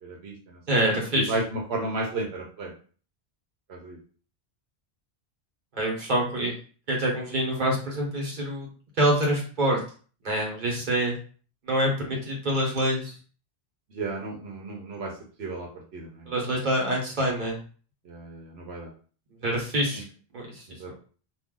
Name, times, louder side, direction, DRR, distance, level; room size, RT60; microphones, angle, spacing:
voice 1, 0.0-0.6 0.9-2.7 3.7-4.0 13.9-15.1 15.4-16.6 18.0-18.9 20.7-20.9, right 2 dB, 80° right, -1 dB, 1.0 m, -34 dB
voice 2, 0.7-1.3 5.8-6.5 6.9-8.7 9.0-9.8 10.2-11.2 11.7-13.1 16.3-17.6 19.4-20.0 20.3-20.5, right 1 dB, 50° right, -2 dB, 1.1 m, -25 dB
2.5 x 2.3 x 3.7 m, 0.40 s
omnidirectional pair, 1.1 m